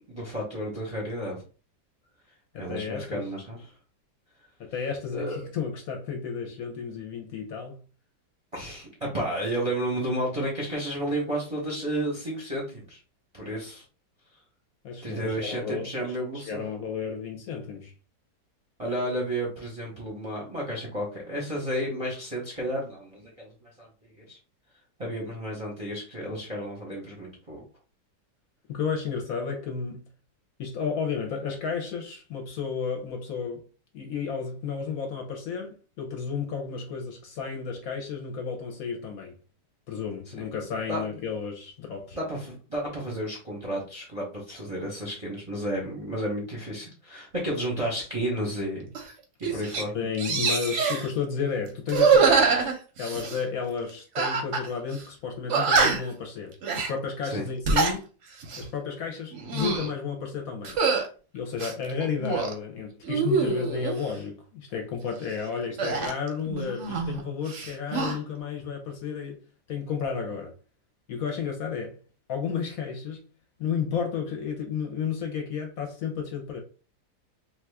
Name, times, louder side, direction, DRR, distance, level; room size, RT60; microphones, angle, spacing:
voice 1, 0.1-1.4 2.6-3.6 5.1-5.5 8.5-13.0 13.3-13.8 15.0-16.6 18.8-24.4 25.0-27.6 40.4-40.5 40.9-41.0 42.1-48.9 49.5-50.0 57.2-57.4, right 1 dB, 30° right, 0.6 m, -32 dB
voice 2, 2.5-3.3 4.6-7.8 14.8-17.9 28.7-30.1 30.6-33.7 33.9-39.3 39.9-42.2 49.5-49.6 49.9-58.1 58.6-60.8 61.3-69.4 69.7-70.5 71.1-72.0 72.3-73.2 73.6-76.6, left 6 dB, 65° left, 1.0 m, -32 dB
sound 1, 48.9-49.1 49.4-49.8 50.2-51.1 51.9-53.4 54.2-54.7 54.9-55.0 55.5-56.2 56.6-56.9 57.5-58.0 58.4-58.7 59.3-59.9 60.6-61.1 61.6-62.5 63.0-64.0 65.8-67.2 67.5-68.2, right 5 dB, 60° right, 0.8 m, -24 dB
2.8 x 2.4 x 3.3 m
omnidirectional pair, 1.8 m